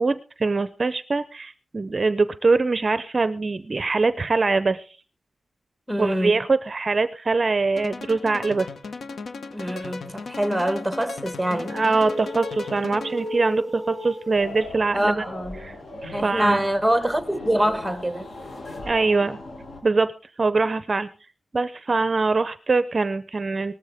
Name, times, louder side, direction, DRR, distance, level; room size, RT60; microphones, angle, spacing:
voice 1, 0.0-5.0 6.0-8.7 11.7-15.2 15.6-15.8 16.0-16.6 18.8-19.4 19.8-20.1 20.4-21.1 21.5-23.7, right 3 dB, 35° right, 0.6 m, -23 dB
voice 2, 5.9-6.4 9.5-11.8 14.9-15.6 16.1-18.3, right 1 dB, ahead, 1.3 m, -24 dB
sound 1, 7.8-13.4, left 4 dB, 80° left, 1.1 m, -37 dB
sound 2, 10.7-15.4 18.7-18.8, left 1 dB, 40° left, 5.2 m, -36 dB
sound 3, 14.3-19.8, left 2 dB, 60° left, 6.5 m, -39 dB
18.5 x 14.0 x 3.5 m
wide cardioid pair, 170°, 0 cm